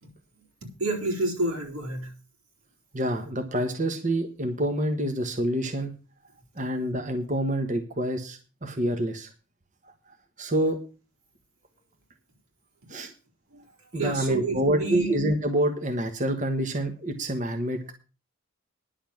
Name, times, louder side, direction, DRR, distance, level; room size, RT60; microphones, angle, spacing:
voice 1, 0.8-2.1 13.5-13.6 13.9-15.1, right 2 dB, 90° right, 1 dB, 4.0 m, -29 dB
voice 2, 2.9-5.9 6.6-9.3 9.8-9.9 10.4-10.8 12.9-13.1 13.9-17.9, right 1 dB, 35° right, 5 dB, 1.4 m, -27 dB
10.5 x 7.2 x 7.1 m, 0.34 s
head